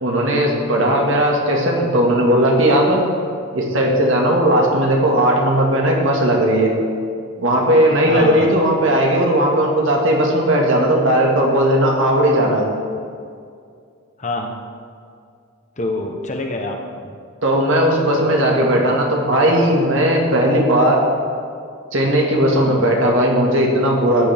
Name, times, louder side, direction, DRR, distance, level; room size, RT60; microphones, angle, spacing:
voice 1, 0.0-3.0 3.5-6.7 7.4-12.6 17.4-21.0 21.9-24.3, right 1 dB, 65° right, -1 dB, 1.9 m, -16 dB
voice 2, 8.1-8.6 14.2-14.5 15.8-16.8 22.6-22.9, left 2 dB, 35° left, 2 dB, 1.0 m, -26 dB
14.0 x 9.7 x 3.5 m, 2.3 s
head